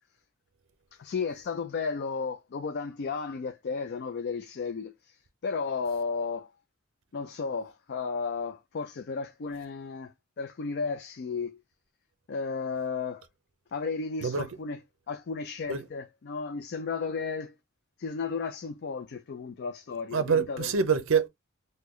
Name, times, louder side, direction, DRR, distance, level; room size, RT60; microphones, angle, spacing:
voice 1, 0.9-6.5 7.1-11.6 12.3-13.3 13.7-14.8 15.1-17.5 18.0-20.7, left 5 dB, 50° left, 0.4 m, -34 dB
voice 2, 20.1-21.3, right 6 dB, 60° right, 0.5 m, -25 dB
3.7 x 2.2 x 3.0 m
head